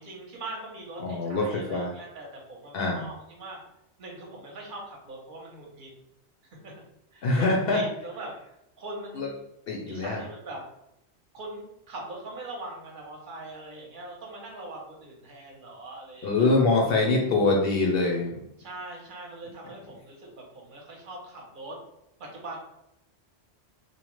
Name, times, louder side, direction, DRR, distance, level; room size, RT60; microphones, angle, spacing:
voice 1, 0.0-3.6 4.0-5.9 6.4-6.7 7.1-9.4 9.9-10.6 11.3-16.5 18.6-21.8 22.2-22.6, right 2 dB, 50° right, -1 dB, 0.9 m, -41 dB
voice 2, 1.0-1.9 2.7-3.0 7.2-7.8 9.2-9.3 9.7-10.2 16.2-18.4, left 3 dB, 65° left, 0 dB, 0.7 m, -24 dB
3.0 x 2.0 x 3.0 m, 0.83 s
omnidirectional pair, 1.2 m